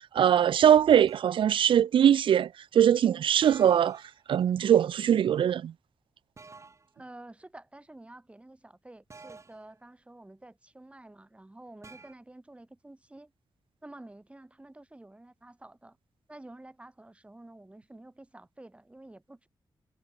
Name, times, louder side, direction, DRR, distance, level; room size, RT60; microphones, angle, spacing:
voice 1, 0.0-4.0 4.3-5.7, right 9 dB, 75° right, 0.4 m, -22 dB
sound 1, 1.1-1.4 3.4-4.2 6.4-6.9 9.1-9.7 11.8-12.1, right 4 dB, 35° right, 6.2 m, -50 dB
voice 2, 6.9-13.3 13.8-16.0 16.3-19.5, right 2 dB, 15° right, 4.1 m, -50 dB
wide cardioid pair, 140°, 9 cm